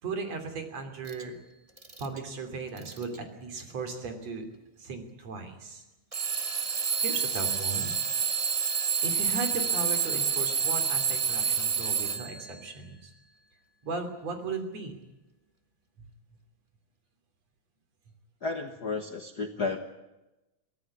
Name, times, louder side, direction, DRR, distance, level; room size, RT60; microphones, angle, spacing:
voice 1, 0.0-1.4 2.0-4.5 4.8-5.8 7.0-7.9 9.0-13.1 13.8-15.0, right 4 dB, 60° right, 7 dB, 4.2 m, -36 dB
Alarm / Clock, 1.1-1.2 1.8-2.2 2.8-3.2 4.0-4.1 6.1-12.5, right 6 dB, 45° right, 0.4 m, -28 dB
voice 2, 18.4-19.8, left 4 dB, 45° left, 5 dB, 1.3 m, -32 dB
23.5 x 16.0 x 9.7 m, 1.0 s
omnidirectional pair, 3.4 m